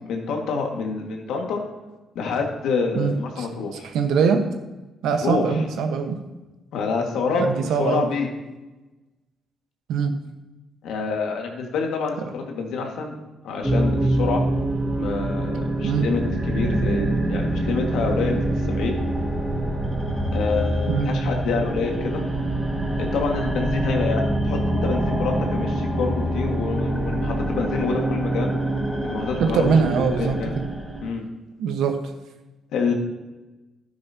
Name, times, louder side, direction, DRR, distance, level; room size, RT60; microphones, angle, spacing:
voice 1, 0.1-1.6 2.2-3.9 5.2-5.5 6.7-7.5 7.8-8.3 10.8-13.2 13.4-14.4 15.0-19.0 20.3-22.2 23.0-28.6 29.1-30.5 31.0-31.2 32.7-32.9, left 4 dB, 80° left, 1 dB, 1.9 m, -27 dB
voice 2, 2.9-3.5 3.8-4.4 5.0-6.2 7.4-8.1 9.9-10.1 15.8-16.1 20.9-21.1 29.4-30.4 31.6-32.0, right 6 dB, 85° right, 5 dB, 1.2 m, -22 dB
sound 1, 13.6-31.1, right 1 dB, ahead, 2.9 m, -25 dB
12.0 x 9.6 x 2.9 m, 1.1 s
cardioid pair, 90°, 0 cm